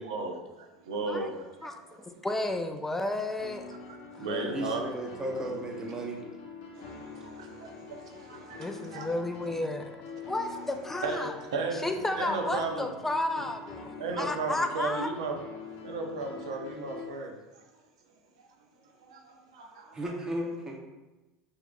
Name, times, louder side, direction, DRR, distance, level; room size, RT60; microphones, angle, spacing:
voice 1, 0.0-2.1 4.2-4.8 6.7-9.2 11.0-11.8 12.1-12.9 14.0-15.3 15.8-17.6 19.0-20.0, right 3 dB, 90° right, 1 dB, 0.7 m, -35 dB
voice 2, 2.1-3.7 4.1-4.3 8.6-9.9 10.3-11.3 11.7-15.1, left 2 dB, 10° left, 6 dB, 0.4 m, -32 dB
sound 1, 3.4-17.1, left 5 dB, 65° left, 0.7 m, -45 dB
voice 3, 4.2-6.2 19.9-20.8, right 1 dB, 20° right, 0 dB, 0.7 m, -35 dB
6.0 x 3.0 x 2.3 m, 1.1 s
hypercardioid pair, 95°, 3 cm